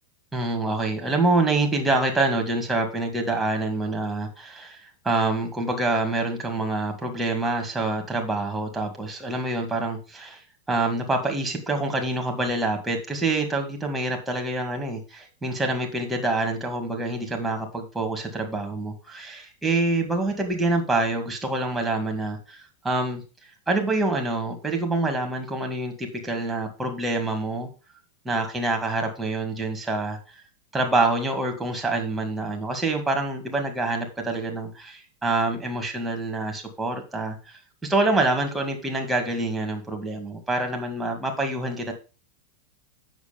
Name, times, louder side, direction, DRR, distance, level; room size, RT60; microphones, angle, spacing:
voice 1, 0.3-10.4 10.7-22.6 22.8-23.2 23.7-27.7 28.3-30.2 30.7-41.9, right 2 dB, 5° right, 3 dB, 2.1 m, -26 dB
8.2 x 6.4 x 5.2 m, 0.33 s
supercardioid pair, 150°, 0 cm